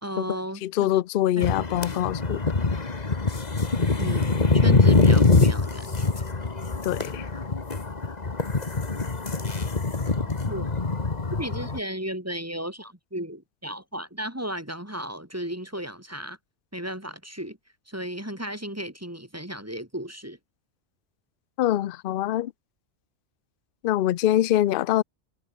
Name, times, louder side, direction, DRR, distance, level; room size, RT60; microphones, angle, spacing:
voice 1, 0.0-0.9 1.4-1.5 4.0-6.2 10.5-10.7 11.3-16.4 16.7-17.6 17.9-20.4, equal, 10° right, 2.4 m, -34 dB
voice 2, 0.6-2.4 6.8-7.3 21.6-22.5 23.8-25.0, left 13 dB, 60° left, 0.6 m, -24 dB
sound 1, 1.4-11.8, left 3 dB, 35° left, 1.7 m, -23 dB
omnidirectional pair, 1.3 m